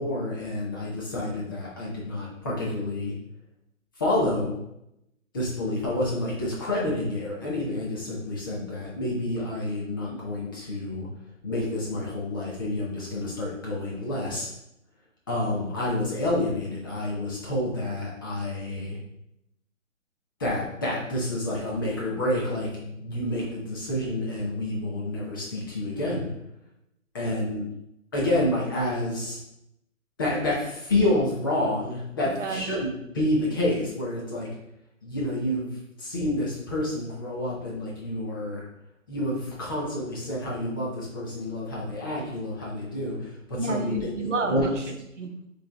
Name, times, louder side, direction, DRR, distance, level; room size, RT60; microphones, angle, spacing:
voice 1, 0.0-3.1 4.0-4.6 5.3-11.1 11.4-14.5 15.3-19.0 20.4-26.3 27.1-27.6 28.1-29.4 30.2-34.5 35.0-38.6 39.1-44.7, left 1 dB, 15° left, -5 dB, 0.7 m, -29 dB
voice 2, 43.5-45.5, right 2 dB, 65° right, 4 dB, 0.9 m, -30 dB
4.6 x 3.4 x 3.4 m, 0.81 s
figure-of-eight pair, 150°, 40 cm